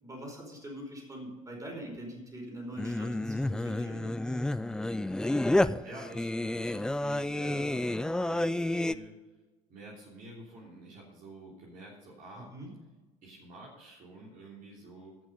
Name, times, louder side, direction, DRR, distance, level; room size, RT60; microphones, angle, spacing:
voice 1, 0.0-4.1 12.3-12.7, right 1 dB, 20° right, 1 dB, 4.7 m, -43 dB
Singing, 2.8-8.9, left 1 dB, 5° left, 0.3 m, -30 dB
voice 2, 5.0-9.2 9.7-12.5 13.2-15.2, right 2 dB, 50° right, -3 dB, 3.2 m, -49 dB
16.5 x 6.2 x 5.2 m, 1.2 s
figure-of-eight pair, 65°, 18 cm